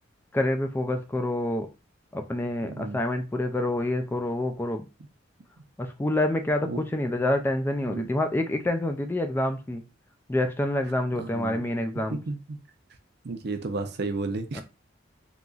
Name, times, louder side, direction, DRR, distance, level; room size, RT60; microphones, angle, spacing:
voice 1, 0.3-1.7 2.1-4.9 5.8-9.8 10.3-12.2 14.5-14.6, left 1 dB, 10° left, 0.3 m, -27 dB
voice 2, 2.6-3.0 6.7-6.8 7.9-8.1 11.2-11.6 12.3-12.4 13.2-14.6, right 3 dB, 60° right, 0.6 m, -32 dB
3.9 x 2.9 x 2.3 m
head